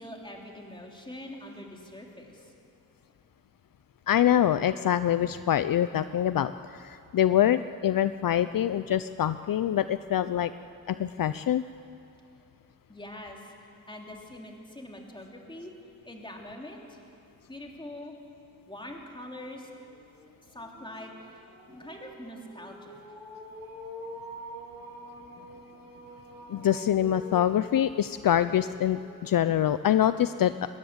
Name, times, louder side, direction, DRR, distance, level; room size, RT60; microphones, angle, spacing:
voice 1, 0.0-2.5 12.9-13.5 13.9-15.7 16.0-17.0 17.5-18.2 18.7-19.7 20.4-21.4 21.7-23.0, left 1 dB, 15° left, 0 dB, 3.0 m, -43 dB
voice 2, 4.1-6.5 6.8-10.5 10.9-11.6 26.5-30.5, left 11 dB, 65° left, 13 dB, 0.5 m, -25 dB
sound 1, 18.5-18.6 19.0-29.7, equal, 85° right, 7.3 m, -46 dB
22.0 x 20.5 x 8.1 m, 2.6 s
wide cardioid pair, 135°, 36 cm